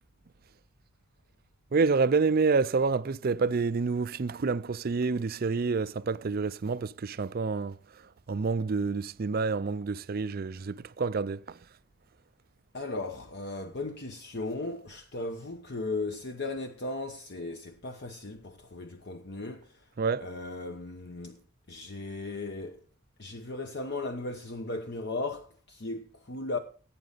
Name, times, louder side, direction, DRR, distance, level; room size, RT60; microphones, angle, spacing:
voice 1, 1.7-7.8 8.3-11.4 20.0-20.3, right 4 dB, 45° right, 0.4 m, -28 dB
voice 2, 12.7-19.8 20.2-21.4 21.7-22.8 23.2-26.6, left 2 dB, 55° left, 1.0 m, -36 dB
16.5 x 8.7 x 4.0 m
head